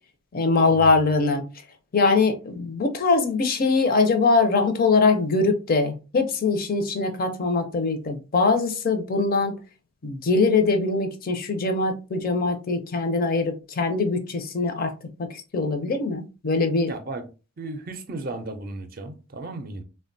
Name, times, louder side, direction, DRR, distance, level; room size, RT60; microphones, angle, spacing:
voice 1, 0.3-1.4 1.9-9.5 10.0-14.9 15.2-15.3 15.5-16.9, left 3 dB, 45° left, 0.5 m, -22 dB
voice 2, 16.9-17.3 17.6-19.8, right 2 dB, 45° right, 0.4 m, -35 dB
3.5 x 2.2 x 2.5 m
head